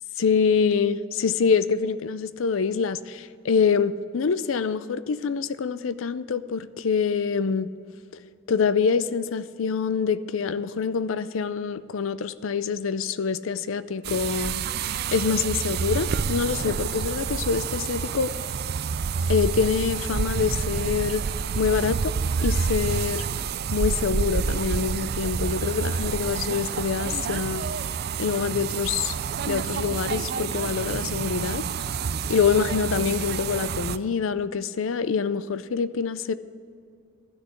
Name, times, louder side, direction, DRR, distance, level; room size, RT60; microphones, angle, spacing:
voice 1, 0.2-7.7 8.5-14.6 15.1-18.3 19.3-21.2 21.5-22.1 22.4-23.3 23.7-27.6 28.2-29.2 29.5-31.6 32.3-36.3, left 6 dB, 85° left, 15 dB, 0.5 m, -25 dB
sound 1, 14.0-34.0, right 6 dB, 50° right, 0.4 m, -28 dB
12.5 x 6.6 x 8.4 m, 2.4 s
head